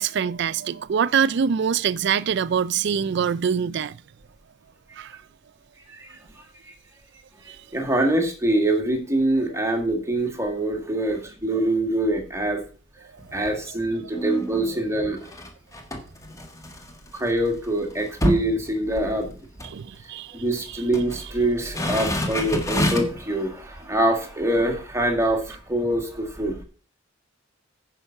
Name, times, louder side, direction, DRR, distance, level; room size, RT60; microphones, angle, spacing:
voice 1, 0.0-4.0 5.0-5.2 7.5-7.6 14.8-14.9 19.7-20.4, right 7 dB, 60° right, 0.4 m, -24 dB
voice 2, 5.9-6.2 6.7-6.8 7.4-12.6 13.3-15.2 17.1-19.4 20.3-26.6, right 1 dB, 15° right, 1.9 m, -24 dB
sound 1, 13.2-13.7 14.1-17.2 17.5-17.6 17.9-19.3 19.6-19.8 20.6-21.2 21.6-23.3 23.8-23.9, equal, 15° left, 1.5 m, -28 dB
9.9 x 5.5 x 5.8 m
head